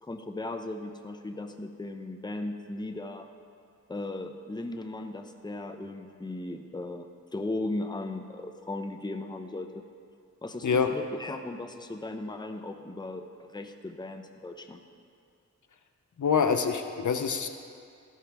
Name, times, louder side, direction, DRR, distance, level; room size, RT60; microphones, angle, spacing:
voice 1, 0.0-3.3 3.9-9.9 10.4-14.8, left 2 dB, 15° left, 6 dB, 0.6 m, -37 dB
voice 2, 16.2-17.5, left 6 dB, 75° left, 7 dB, 0.7 m, -25 dB
13.0 x 12.0 x 3.4 m, 2.3 s
wide cardioid pair, 75°, 30 cm